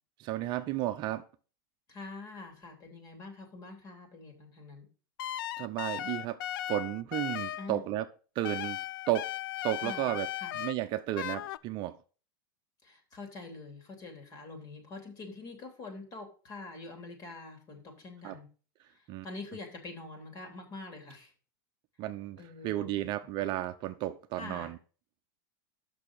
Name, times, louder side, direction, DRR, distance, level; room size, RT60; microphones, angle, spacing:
voice 1, 0.2-1.2 5.6-6.4 6.7-8.1 8.4-8.8 9.1-9.3 9.6-10.3 10.5-12.0 18.2-18.4 19.1-19.3 22.0-24.8, right 14 dB, 40° right, 0.6 m, -33 dB
voice 2, 1.9-4.9 7.6-7.9 9.8-10.1 10.4-10.6 12.8-18.5 18.9-21.3 22.4-23.1 24.4-24.7, left 3 dB, 35° left, 3.1 m, -45 dB
sound 1, 5.2-7.7 8.4-10.7 11.2-11.6, left 13 dB, 75° left, 0.4 m, -37 dB
6.6 x 6.2 x 6.2 m
supercardioid pair, 130°, 12 cm